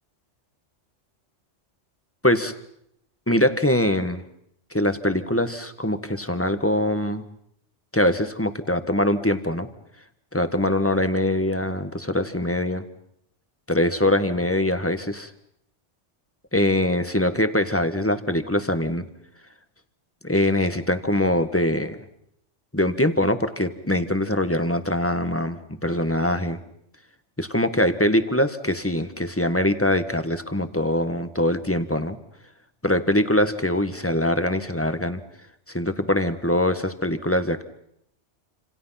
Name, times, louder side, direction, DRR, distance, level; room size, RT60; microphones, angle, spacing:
voice 1, 2.2-2.5 3.3-4.2 4.7-7.2 7.9-9.7 10.3-12.8 13.7-15.3 16.5-19.1 20.2-22.0 22.7-26.6 27.4-32.2 32.8-35.2 35.7-37.6, left 1 dB, 10° left, 9 dB, 1.5 m, -23 dB
29.0 x 27.0 x 5.9 m, 0.74 s
omnidirectional pair, 1.2 m